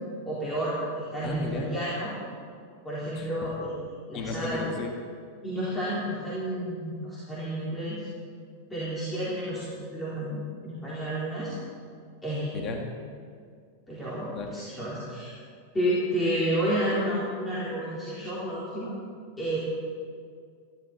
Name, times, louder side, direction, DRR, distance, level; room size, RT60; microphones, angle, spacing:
voice 1, 0.3-2.1 2.8-3.8 4.1-4.6 5.4-8.1 8.7-11.5 12.2-12.7 13.9-15.3 15.7-18.9 19.4-19.6, equal, 10° left, -9 dB, 4.1 m, -31 dB
voice 2, 1.2-1.8 3.2-3.5 4.1-5.0 12.5-12.8 14.4-14.5, left 2 dB, 35° left, 3 dB, 1.9 m, -34 dB
21.0 x 14.5 x 4.3 m, 2.1 s
figure-of-eight pair, 90°, 0 cm